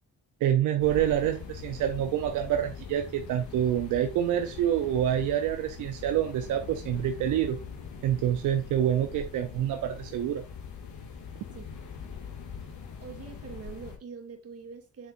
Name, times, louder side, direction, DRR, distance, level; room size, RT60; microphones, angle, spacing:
voice 1, 0.4-7.6 8.0-10.4, right 11 dB, 85° right, 0.7 m, -27 dB
sound 1, 0.8-14.0, left 6 dB, 75° left, 2.2 m, -42 dB
voice 2, 13.0-15.1, right 6 dB, 50° right, 2.4 m, -44 dB
7.6 x 6.6 x 2.6 m
cardioid pair, 90°, 30 cm